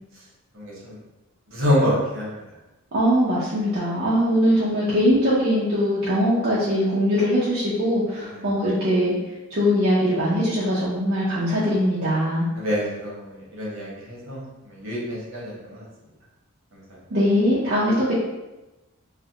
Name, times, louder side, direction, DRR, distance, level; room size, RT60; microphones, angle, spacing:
voice 1, 0.5-1.0 1.5-2.4 12.6-14.4 14.7-15.8 16.7-16.8, equal, 65° right, -5 dB, 0.9 m, -26 dB
voice 2, 2.9-9.2 9.5-12.5 17.1-18.2, equal, 50° right, -9 dB, 0.5 m, -21 dB
2.4 x 2.0 x 2.7 m, 1.0 s
head